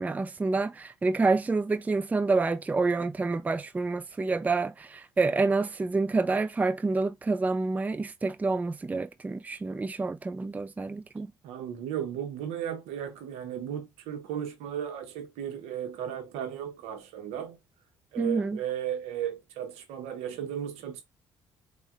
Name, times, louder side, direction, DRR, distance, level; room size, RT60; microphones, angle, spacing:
voice 1, 0.0-11.3 18.2-18.6, right 3 dB, 15° right, 0.3 m, -28 dB
voice 2, 11.4-17.6 18.1-21.0, right 9 dB, 85° right, 0.7 m, -35 dB
3.6 x 2.1 x 2.2 m
supercardioid pair, 65°, 10 cm